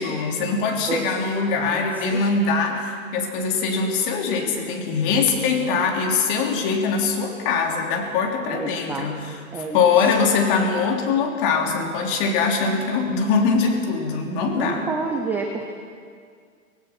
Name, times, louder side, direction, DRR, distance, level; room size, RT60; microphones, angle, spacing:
voice 1, 0.0-9.2 9.5-14.8, left 5 dB, 40° left, 1 dB, 3.4 m, -22 dB
voice 2, 1.5-2.3 8.5-10.3 14.5-15.7, right 4 dB, 5° right, 2 dB, 0.5 m, -30 dB
25.0 x 17.5 x 6.0 m, 2.1 s
hypercardioid pair, 135°, 42 cm